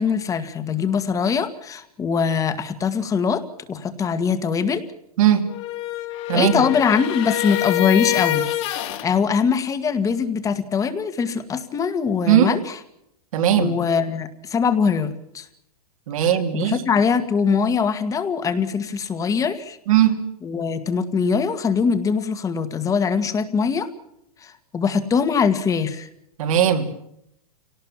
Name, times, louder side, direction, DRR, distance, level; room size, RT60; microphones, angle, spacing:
voice 1, 0.0-3.4 3.7-4.8 6.3-12.8 13.6-15.5 16.5-19.8 20.4-23.9 24.4-26.1, left 6 dB, 20° left, 11 dB, 1.9 m, -22 dB
sound 1, 5.5-9.1, left 14 dB, 50° left, 2.7 m, -26 dB
voice 2, 6.3-6.6 12.3-12.5 13.3-13.7 16.1-16.8 19.9-20.2 26.4-26.9, right 10 dB, 70° right, 5 dB, 3.3 m, -18 dB
27.0 x 18.5 x 7.4 m, 0.76 s
hypercardioid pair, 145°, 19 cm